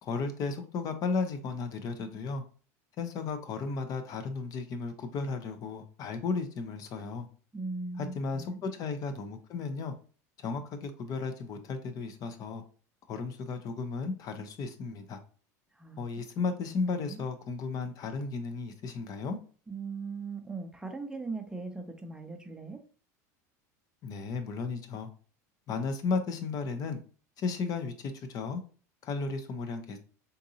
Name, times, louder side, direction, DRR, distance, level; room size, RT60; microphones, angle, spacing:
voice 1, 0.0-2.4 3.0-7.3 8.0-9.9 10.4-12.6 13.1-15.2 16.0-19.4 24.0-25.1 25.7-27.0 27.4-28.6 29.0-30.0, left 4 dB, 45° left, 0.6 m, -34 dB
voice 2, 7.5-8.6 15.8-16.1 16.6-17.2 19.7-22.8, right 3 dB, 10° right, 0.5 m, -39 dB
3.9 x 2.6 x 2.7 m
supercardioid pair, 100°, 9 cm